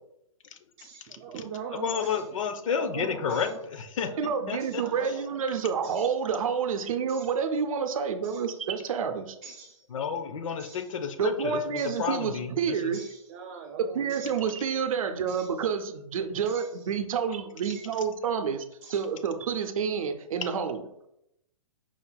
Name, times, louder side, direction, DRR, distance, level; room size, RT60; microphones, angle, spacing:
voice 1, 0.8-2.3 2.6-3.6 4.0-4.2 4.5-5.5 5.8-6.1 7.1-7.3 8.2-8.4 9.4-9.9 10.6-10.9 11.8-12.0 12.9-14.4 15.3-15.5 16.4-16.9 17.6-17.9 18.8-19.1, right 6 dB, 25° right, 1 dB, 0.4 m, -42 dB
voice 2, 1.7-5.1 9.9-12.9 20.4-20.5, left 6 dB, 70° left, 8 dB, 0.6 m, -31 dB
voice 3, 4.2-9.4 11.2-13.0 13.8-18.6 18.9-20.8, right 6 dB, 75° right, 7 dB, 0.5 m, -29 dB
4.8 x 4.0 x 2.2 m, 0.81 s
hypercardioid pair, 140°, 17 cm